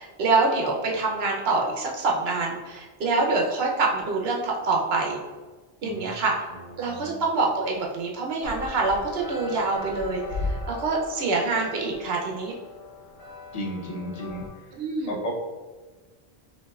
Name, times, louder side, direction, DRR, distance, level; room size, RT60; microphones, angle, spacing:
voice 1, 0.0-5.2 5.8-6.3 6.8-10.2 10.5-12.5 14.7-15.2, right 3 dB, 80° right, -1 dB, 1.0 m, -25 dB
voice 2, 6.8-7.2 13.5-14.4 15.1-15.4, equal, 40° left, -2 dB, 0.8 m, -33 dB
sound 1, 8.4-14.5, left 2 dB, 85° left, 1.0 m, -37 dB
5.3 x 2.7 x 2.3 m, 1.3 s
omnidirectional pair, 1.0 m